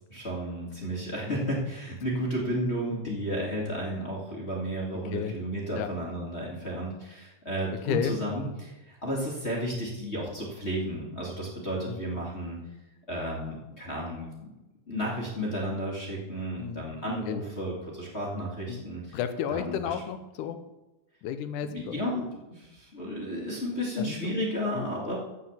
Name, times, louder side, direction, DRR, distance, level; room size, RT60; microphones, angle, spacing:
voice 1, 0.0-12.6 13.1-14.3 14.9-19.2 19.5-19.9 21.6-25.2, equal, 25° left, -5 dB, 1.8 m, -33 dB
voice 2, 19.1-20.6 21.2-22.0 24.0-24.3 24.8-24.9, left 8 dB, 75° left, 10 dB, 2.2 m, -32 dB
14.0 x 4.8 x 7.1 m, 1.0 s
omnidirectional pair, 3.9 m